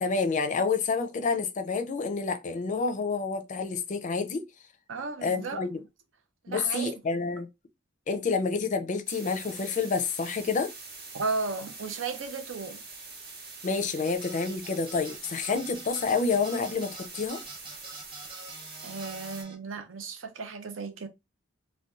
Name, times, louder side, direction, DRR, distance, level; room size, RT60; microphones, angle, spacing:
voice 1, 0.0-4.4 5.2-5.8 6.5-7.5 8.1-10.7 13.6-17.4, left 4 dB, 40° left, 0.4 m, -28 dB
voice 2, 4.9-5.7 6.4-6.9 11.1-12.8 18.8-21.1, right 4 dB, 75° right, 0.6 m, -34 dB
sound 1, 9.1-19.4, right 4 dB, 55° right, 0.9 m, -44 dB
sound 2, 14.0-19.5, right 2 dB, 25° right, 0.6 m, -46 dB
2.6 x 2.2 x 3.5 m
head